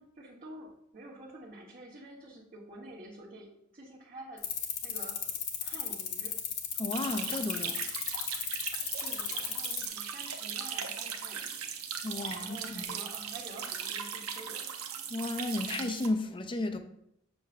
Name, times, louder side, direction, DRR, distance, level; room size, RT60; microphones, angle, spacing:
voice 1, 0.0-4.5 4.8-5.2 5.6-6.4 9.0-11.7 12.4-14.8, right 1 dB, 40° right, 1.2 m, -48 dB
sound 1, 4.4-9.9, left 9 dB, 50° left, 1.0 m, -34 dB
voice 2, 6.8-7.8 12.0-12.9 15.1-16.8, left 2 dB, 25° left, 0.5 m, -33 dB
sound 2, 6.9-16.1, right 7 dB, 85° right, 0.8 m, -38 dB
7.1 x 6.8 x 2.5 m
head